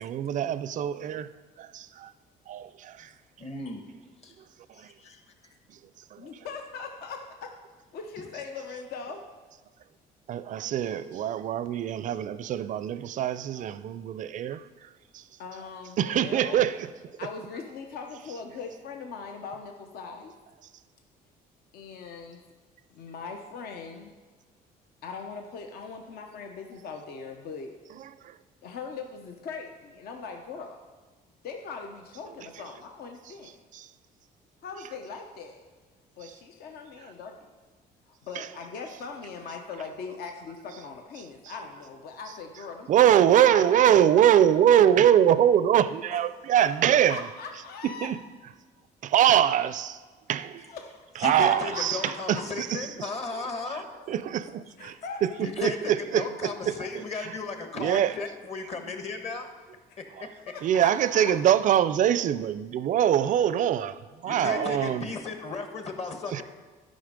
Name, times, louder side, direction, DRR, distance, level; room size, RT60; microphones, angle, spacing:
voice 1, 0.0-1.3 1.6-2.1 2.5-3.1 6.1-6.3 10.3-14.6 15.1-15.2 16.0-16.8 28.2-28.3 33.7-33.8 38.4-38.5 42.9-47.2 48.0-48.2 49.0-50.0 50.3-50.7 51.2-52.8 54.1-55.0 55.2-55.3 55.6-57.0 57.7-58.1 60.6-65.1 66.3-66.4, right 10 dB, 50° right, 0.4 m, -23 dB
voice 2, 3.4-3.8 4.2-4.3 5.0-5.5 51.2-53.8 55.4-59.5 60.0-60.3 64.2-66.4, left 4 dB, 40° left, 1.3 m, -35 dB
voice 3, 6.2-7.5 7.9-9.2 10.8-11.1 15.4-16.7 17.2-20.3 21.7-22.4 22.9-24.1 25.0-27.7 28.6-30.8 31.4-33.6 34.6-35.6 36.2-37.5 38.1-43.1 43.4-43.7 46.1-46.2 46.6-48.1 50.7-52.5 54.8-55.4 59.9-60.0 60.4-61.3 64.4-64.9, left 5 dB, 65° left, 0.8 m, -40 dB
11.5 x 5.3 x 5.2 m
cardioid pair, 110°, 17 cm